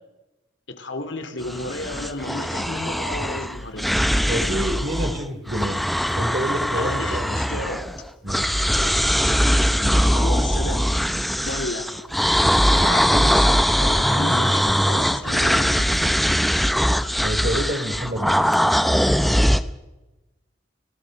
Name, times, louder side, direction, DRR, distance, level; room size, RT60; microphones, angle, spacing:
voice 1, 0.7-3.9 6.7-7.9 8.8-9.0 10.1-10.9 11.4-11.9 12.6-15.7, left 2 dB, 65° left, 7 dB, 3.2 m, -32 dB
sound 1, 1.4-5.2 5.5-8.0 8.3-19.6, equal, ahead, 0.7 m, -21 dB
voice 2, 4.3-5.8 6.1-7.7 8.2-8.5 9.8-10.1 17.2-18.5, right 1 dB, 45° right, 7 dB, 3.4 m, -28 dB
30.0 x 18.0 x 6.7 m, 1.1 s
head